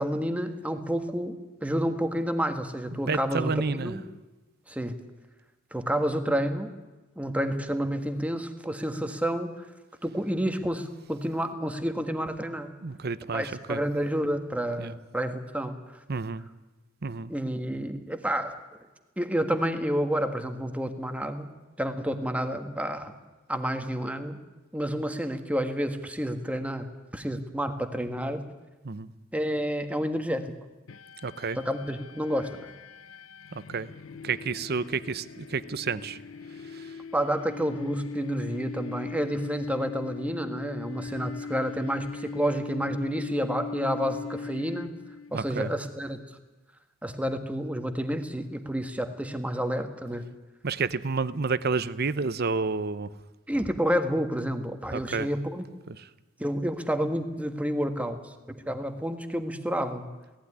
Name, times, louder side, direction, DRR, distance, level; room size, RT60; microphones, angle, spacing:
voice 1, 0.0-3.5 3.8-4.0 4.7-5.0 5.7-6.7 7.2-9.6 10.0-12.7 13.3-16.0 17.3-18.6 19.2-21.5 21.8-23.1 23.5-24.4 24.7-28.4 29.3-30.5 31.6-32.7 37.1-44.9 45.3-46.2 47.0-50.2 53.5-55.6 56.4-60.1, equal, 5° right, 7 dB, 1.5 m, -29 dB
voice 2, 2.9-4.0 12.8-13.8 14.8-14.9 16.1-16.4 17.0-17.3 28.8-29.1 31.2-31.6 33.5-33.9 34.2-36.2 36.7-37.0 45.3-45.7 50.6-53.1 54.9-55.3, right 4 dB, 50° right, 15 dB, 0.8 m, -30 dB
sound 1, 30.9-45.4, left 5 dB, 85° left, 0.7 m, -40 dB
17.5 x 15.5 x 9.8 m, 1.1 s
head